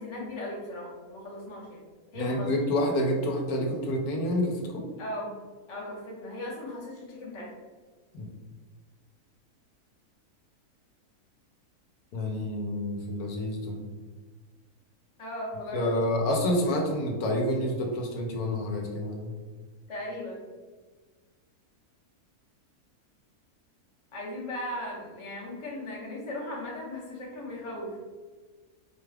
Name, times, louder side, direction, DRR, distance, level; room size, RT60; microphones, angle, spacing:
voice 1, 0.0-1.8 2.1-2.6 5.0-5.3 5.7-7.5 15.2-16.0 19.9-20.4 24.1-28.0, left 1 dB, 25° left, -3 dB, 0.7 m, -37 dB
voice 2, 2.1-4.8 8.1-8.3 12.1-13.8 15.7-19.3, left 1 dB, 75° left, 1 dB, 1.1 m, -28 dB
4.4 x 2.3 x 3.3 m, 1.4 s
omnidirectional pair, 1.6 m